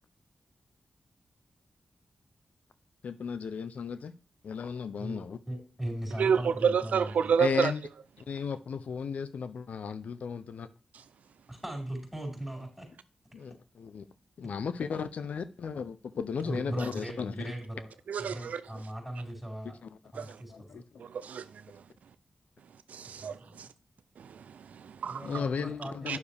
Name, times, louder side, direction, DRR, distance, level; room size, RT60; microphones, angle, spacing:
voice 1, 3.0-4.1 4.4-5.4 7.4-7.8 8.3-10.7 13.3-14.0 14.4-17.5 19.8-19.9 20.5-20.8 25.2-26.2, left 6 dB, 80° left, 0.5 m, -35 dB
voice 2, 5.0-7.3 11.5-12.9 16.4-17.9 18.2-19.8 20.1-20.8 23.0-23.6 25.1-26.2, right 1 dB, 5° right, 5.0 m, -39 dB
voice 3, 6.2-7.7 18.1-18.6 20.2-20.4 21.0-21.4 21.7-21.8 22.9-23.7 24.2-25.4 26.1-26.2, right 6 dB, 85° right, 0.4 m, -29 dB
9.5 x 6.8 x 3.4 m
cardioid pair, 55°, 2 cm